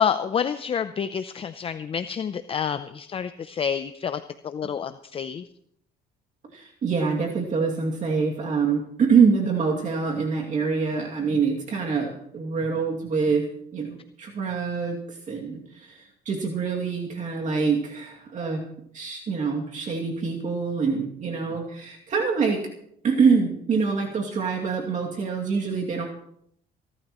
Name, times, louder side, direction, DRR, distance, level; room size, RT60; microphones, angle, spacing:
voice 1, 0.0-5.4, left 7 dB, 35° left, 11 dB, 0.6 m, -28 dB
voice 2, 6.5-15.0 15.3-18.6 18.9-22.6 23.0-26.1, right 5 dB, 45° right, 0 dB, 2.5 m, -25 dB
27.5 x 12.0 x 3.1 m, 0.70 s
cardioid pair, 110°, 17 cm